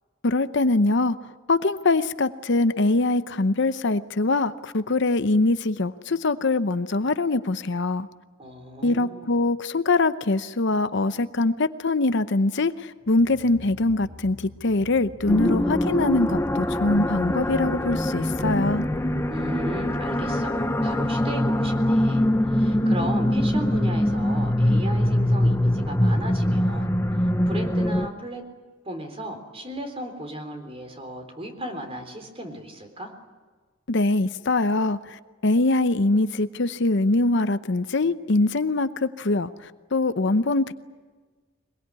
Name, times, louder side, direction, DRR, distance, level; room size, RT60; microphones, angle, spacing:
voice 1, 0.2-1.2 1.5-8.1 8.8-18.9 33.9-40.7, left 2 dB, 60° left, 12 dB, 0.8 m, -23 dB
voice 2, 8.4-9.3 19.3-26.9 27.2-28.4 28.8-33.1, right 1 dB, 30° right, 6 dB, 3.8 m, -36 dB
sound 1, 13.0-19.5, left 1 dB, 80° right, 4.7 m, -47 dB
sound 2, 15.3-28.1, left 1 dB, 15° left, 0.9 m, -23 dB
23.0 x 22.0 x 9.7 m, 1.4 s
head